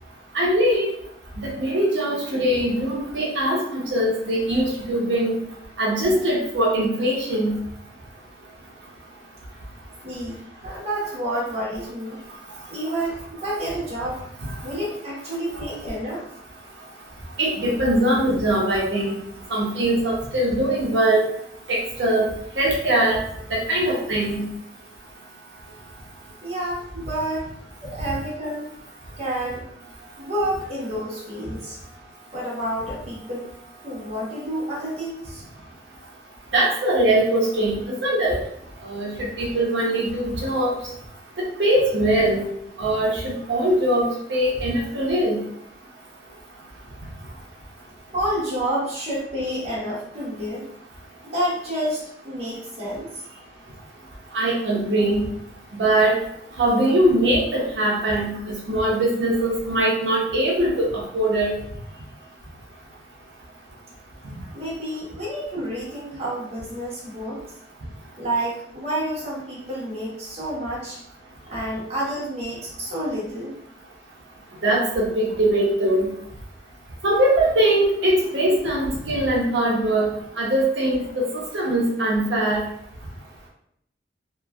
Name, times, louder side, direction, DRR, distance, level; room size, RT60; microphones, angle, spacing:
voice 1, 0.3-0.9 1.4-5.4 5.8-7.5 17.4-19.2 19.5-21.2 21.7-22.3 22.6-23.2 23.5-24.5 36.5-38.4 38.8-40.7 41.4-42.4 42.8-45.4 54.3-55.2 55.8-56.2 56.6-61.5 74.6-76.1 77.0-80.1 80.4-81.2 81.5-82.6, right 1 dB, 90° right, -4 dB, 0.7 m, -21 dB
voice 2, 10.0-12.2 12.7-14.2 14.6-16.3 26.4-27.5 27.8-28.7 29.2-29.7 30.2-31.8 32.3-33.5 33.8-35.4 48.1-50.7 51.2-53.2 64.5-67.4 68.2-71.0 71.5-73.5, right 1 dB, 35° right, -6 dB, 1.1 m, -29 dB
3.0 x 2.4 x 2.3 m, 0.70 s
head